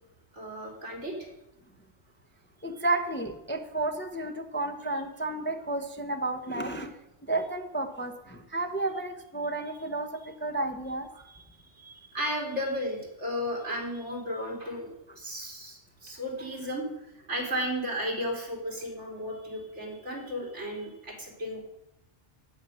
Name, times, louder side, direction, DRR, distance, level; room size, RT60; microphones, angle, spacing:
voice 1, 0.3-1.3 11.2-11.4 11.7-14.9 15.2-16.9 17.3-21.6, equal, 75° right, -1 dB, 3.9 m, -34 dB
voice 2, 2.6-6.9 7.2-11.3, right 2 dB, 10° left, 5 dB, 0.8 m, -32 dB
12.5 x 9.1 x 6.5 m, 0.90 s
omnidirectional pair, 1.2 m